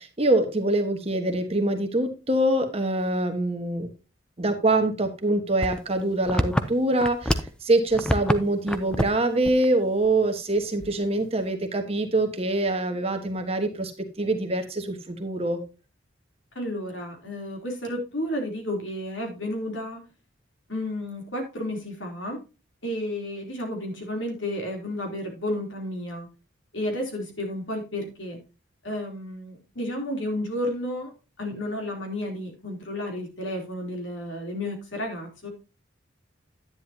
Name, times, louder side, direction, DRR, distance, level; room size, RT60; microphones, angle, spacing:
voice 1, 0.0-3.9 4.4-13.9 14.2-15.6, right 2 dB, 30° right, 6 dB, 1.3 m, -24 dB
sound 1, 5.6-7.6 7.9-8.4 8.7-9.2 9.4-9.7 10.0-10.1 10.8-11.2, equal, 5° left, 0.5 m, -26 dB
voice 2, 16.5-20.0 20.7-22.4 22.8-26.3 26.7-28.4 28.8-31.1 31.4-35.5, left 1 dB, 75° left, 2 dB, 3.3 m, -32 dB
10.5 x 9.7 x 2.8 m, 0.30 s
head